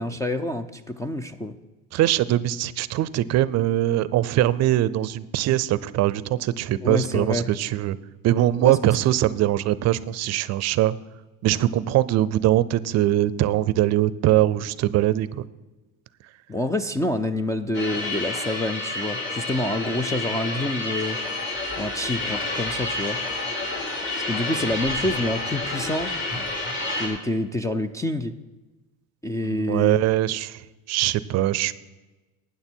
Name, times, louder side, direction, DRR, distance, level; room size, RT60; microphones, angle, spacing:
voice 1, 0.0-1.5 6.8-7.4 8.6-8.8 16.5-21.2 21.8-23.2 24.2-26.1 27.0-28.3 29.2-30.0, left 1 dB, 10° left, 10 dB, 0.3 m, -27 dB
voice 2, 1.9-8.0 8.2-10.9 11.4-15.4 29.4-31.7, right 14 dB, 50° right, 18 dB, 0.5 m, -22 dB
sound 1, 17.7-27.1, left 2 dB, 35° left, 3.8 m, -29 dB
13.0 x 9.4 x 4.5 m, 1.1 s
cardioid pair, 140°, 34 cm